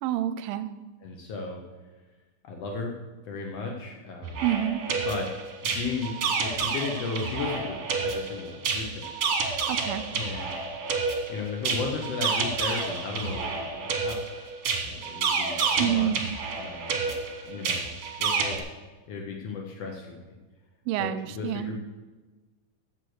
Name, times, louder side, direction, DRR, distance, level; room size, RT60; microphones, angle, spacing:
voice 1, 0.0-0.7 4.4-4.8 9.7-10.0 15.8-16.2 20.9-21.7, right 11 dB, 90° right, 12 dB, 2.3 m, -28 dB
voice 2, 1.0-1.6 2.4-2.9 3.2-4.4 5.0-5.3 5.6-9.1 10.1-10.6 11.3-14.2 14.8-16.3 16.6-17.1 17.4-17.9 18.2-18.6 19.1-20.4 21.0-21.8, left 4 dB, 75° left, 1 dB, 1.5 m, -35 dB
sound 1, 4.2-18.6, right 5 dB, 60° right, 1.6 m, -30 dB
7.9 x 7.3 x 6.4 m, 1.2 s
omnidirectional pair, 4.0 m